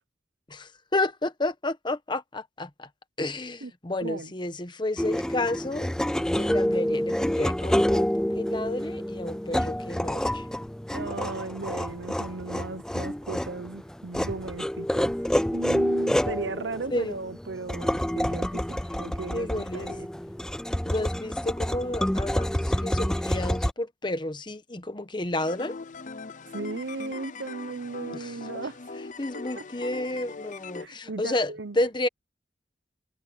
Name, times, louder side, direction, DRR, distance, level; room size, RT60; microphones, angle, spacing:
voice 1, 0.5-2.9 3.2-5.9 6.2-10.5 16.9-17.1 19.3-19.9 20.8-25.8 28.1-28.3 29.2-32.1, left 2 dB, 25° left, 1.1 m, -31 dB
voice 2, 4.0-4.3 10.9-15.1 15.5-20.1 26.5-28.8 29.6-29.7 30.7-31.8, right 3 dB, 90° right, 1.0 m, -36 dB
sound 1, 5.0-23.7, equal, 5° left, 0.3 m, -28 dB
sound 2, 25.4-30.9, left 4 dB, 45° left, 0.6 m, -40 dB
head